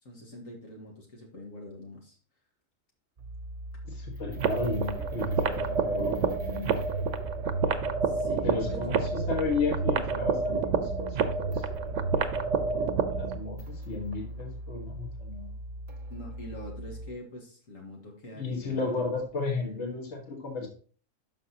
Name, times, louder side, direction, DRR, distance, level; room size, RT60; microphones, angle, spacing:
voice 1, 0.0-2.2 8.1-8.9 16.1-19.0 19.5-19.9, left 1 dB, 75° left, 0 dB, 2.0 m, -44 dB
sound 1, 3.2-17.1, equal, 40° right, 1.0 m, -41 dB
voice 2, 3.9-6.7 8.4-11.9 13.1-15.5 18.3-20.7, left 4 dB, 60° left, 0 dB, 1.9 m, -34 dB
sound 2, 4.4-13.4, right 5 dB, 65° right, 1.1 m, -29 dB
11.5 x 5.8 x 2.9 m, 0.42 s
omnidirectional pair, 1.4 m